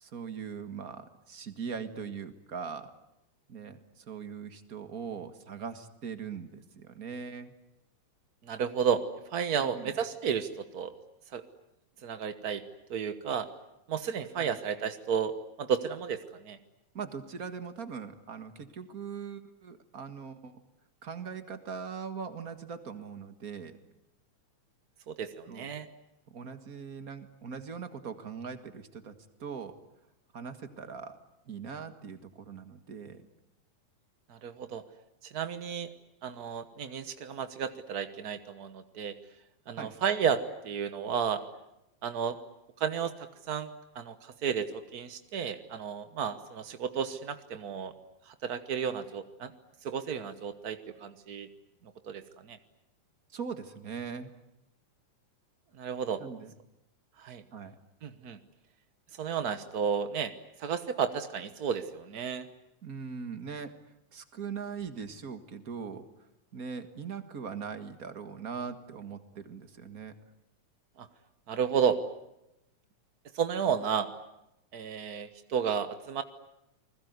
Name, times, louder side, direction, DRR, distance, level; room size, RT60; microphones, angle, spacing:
voice 1, 0.0-2.9 3.5-7.5 9.6-9.9 14.4-14.5 16.9-20.6 21.0-23.8 25.5-25.6 26.3-29.1 29.4-29.7 30.3-31.2 31.5-33.2 39.8-39.9 53.3-54.3 56.2-56.5 57.5-57.7 62.8-63.7 64.1-66.1 66.5-70.1, right 6 dB, 35° right, 9 dB, 1.7 m, -41 dB
voice 2, 8.4-9.0 9.3-10.9 11.3-11.4 12.0-12.6 12.9-13.5 13.9-15.3 15.6-16.6 25.1-25.9 34.3-34.8 35.2-35.9 36.2-39.1 39.7-41.4 42.0-42.4 42.8-43.7 43.9-47.9 48.3-49.5 49.8-51.5 52.0-52.6 55.8-56.2 57.2-57.4 58.0-58.4 59.2-60.3 60.6-62.5 71.0-71.1 71.5-72.0 73.3-74.1 74.7-76.2, right 7 dB, 70° right, 10 dB, 0.8 m, -32 dB
29.5 x 20.5 x 9.5 m, 0.87 s
omnidirectional pair, 3.4 m